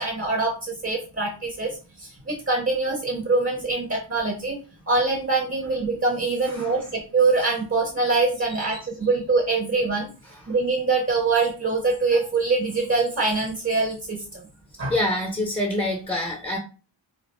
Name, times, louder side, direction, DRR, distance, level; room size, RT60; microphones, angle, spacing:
voice 1, 0.0-4.6 4.9-10.1 10.5-14.4 14.8-14.9, right 3 dB, 30° right, 0 dB, 0.7 m, -24 dB
voice 2, 14.9-16.6, left 1 dB, 10° left, -1 dB, 0.6 m, -26 dB
2.4 x 2.1 x 2.9 m, 0.34 s
wide cardioid pair, 45°, 48 cm